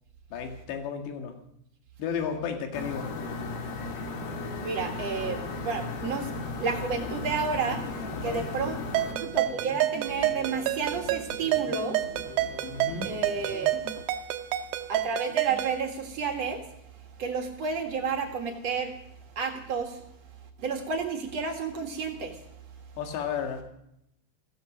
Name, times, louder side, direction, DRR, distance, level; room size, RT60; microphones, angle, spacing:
voice 1, 0.3-1.4 2.0-3.1 8.1-8.4 12.7-13.1 23.0-23.7, left 7 dB, 90° left, 5 dB, 4.1 m, -33 dB
sound 1, 2.7-9.1, left 3 dB, 70° left, 4.2 m, -35 dB
voice 2, 4.6-6.3 6.6-7.8 8.2-8.8 9.2-12.0 13.0-13.7 14.9-16.6 17.2-18.9 19.4-20.0 20.6-22.4, right 5 dB, 50° right, 4 dB, 2.3 m, -31 dB
sound 2, 6.9-14.0, left 4 dB, 50° left, 2.0 m, -43 dB
Ringtone, 8.9-15.8, right 15 dB, 80° right, 2.7 m, -29 dB
16.0 x 14.0 x 6.3 m, 0.76 s
omnidirectional pair, 4.8 m